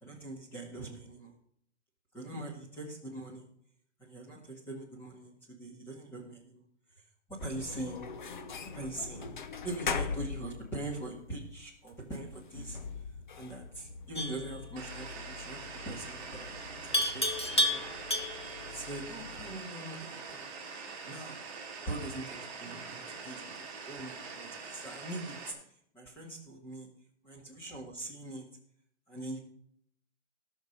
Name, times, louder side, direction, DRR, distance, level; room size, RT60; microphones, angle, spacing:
voice 1, 0.0-1.3 2.1-3.5 4.0-6.6 7.4-8.0 8.7-9.4 9.6-12.8 13.4-15.6 15.9-17.8 18.4-20.5 21.1-21.4 21.9-25.5 25.9-26.9 27.2-28.5 29.1-29.4, right 2 dB, 5° left, -2 dB, 1.9 m, -42 dB
sound 1, 7.4-19.6, left 5 dB, 40° left, 0.8 m, -42 dB
Livestock farm animals working animals, 14.2-14.5 16.9-18.6, left 1 dB, 25° left, 0.4 m, -30 dB
sound 2, 14.8-25.5, right 4 dB, 20° right, 2.6 m, -44 dB
17.0 x 6.6 x 5.4 m, 0.65 s
hypercardioid pair, 180°, 35 cm